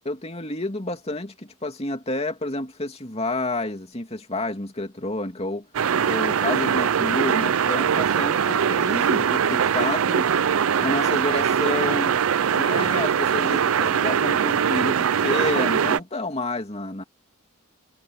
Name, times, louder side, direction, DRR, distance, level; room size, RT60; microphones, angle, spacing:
voice 1, 0.1-5.7 6.0-10.3 10.8-12.2 12.5-17.0, left 2 dB, 30° left, 2.7 m, -29 dB
sound 1, 5.7-16.0, right 7 dB, 80° right, 0.5 m, -22 dB
head